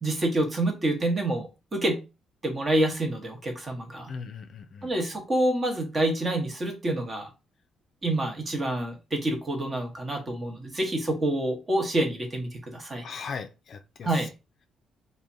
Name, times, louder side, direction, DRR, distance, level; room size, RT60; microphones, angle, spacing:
voice 1, 0.0-2.0 2.4-4.1 4.8-7.3 8.0-13.1 14.0-14.3, right 1 dB, 30° right, 1.0 m, -27 dB
voice 2, 4.1-5.0 13.0-14.3, left 5 dB, 55° left, 0.4 m, -39 dB
3.2 x 2.1 x 2.6 m
cardioid pair, 90°, 0 cm